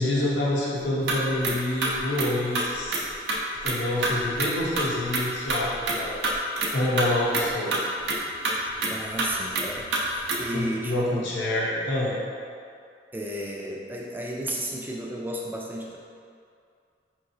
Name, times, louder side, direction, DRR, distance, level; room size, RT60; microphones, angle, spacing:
voice 1, 0.0-3.0 3.6-6.2 6.7-7.8 10.5-12.2, left 1 dB, 80° left, -6 dB, 0.7 m, -27 dB
sound 1, 0.8-1.2 1.4-1.5 1.8-3.0 3.3-3.8 4.0-6.7 7.0-7.1 7.3-7.4 7.7-10.6, right 2 dB, 75° right, 0.5 m, -27 dB
voice 2, 8.8-11.2 13.1-16.0, right 1 dB, 10° right, -2 dB, 0.3 m, -33 dB
4.6 x 2.9 x 2.6 m, 2.3 s
head